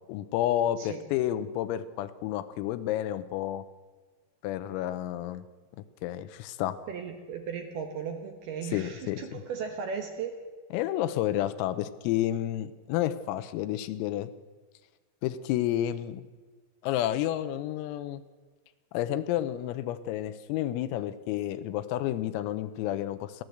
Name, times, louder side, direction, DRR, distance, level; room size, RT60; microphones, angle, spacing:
voice 1, 0.1-3.6 4.4-5.4 5.8-6.8 8.7-9.4 10.7-14.3 15.2-16.2 16.8-18.2 18.9-23.4, left 12 dB, 85° left, 13 dB, 3.6 m, -30 dB
voice 2, 6.9-10.4, right 6 dB, 70° right, 5 dB, 2.6 m, -36 dB
30.0 x 12.5 x 7.9 m, 1.4 s
omnidirectional pair, 6.0 m